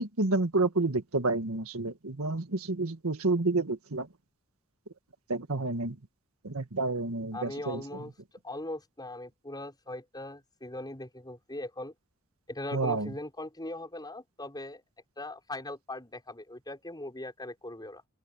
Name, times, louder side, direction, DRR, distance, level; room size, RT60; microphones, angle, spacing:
voice 1, 0.0-4.1 5.3-6.0 6.4-7.8 12.7-13.1, right 3 dB, 85° right, 1.7 m, -29 dB
voice 2, 7.3-8.1 8.4-11.9 12.5-14.8 15.2-18.0, left 1 dB, 20° left, 5.8 m, -40 dB
open air
head